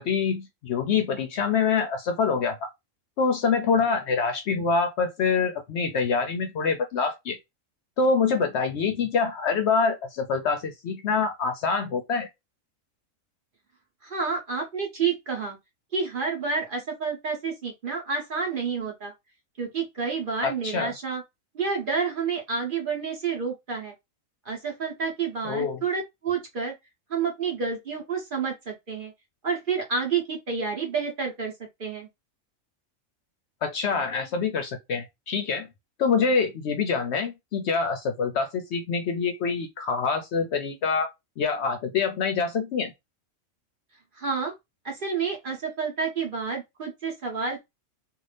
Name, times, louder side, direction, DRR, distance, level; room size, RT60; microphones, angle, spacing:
voice 1, 0.0-2.7 3.2-7.4 8.0-12.3 20.4-20.9 25.4-25.8 33.6-35.7 36.0-41.1 41.4-42.9, left 5 dB, 65° left, 0.7 m, -25 dB
voice 2, 14.0-15.6 15.9-19.1 19.6-21.2 21.5-23.9 24.4-26.7 27.1-29.1 29.4-31.5 31.8-32.1 44.2-44.5 44.8-47.6, right 5 dB, 45° right, 1.0 m, -29 dB
2.6 x 2.4 x 3.2 m
omnidirectional pair, 1.4 m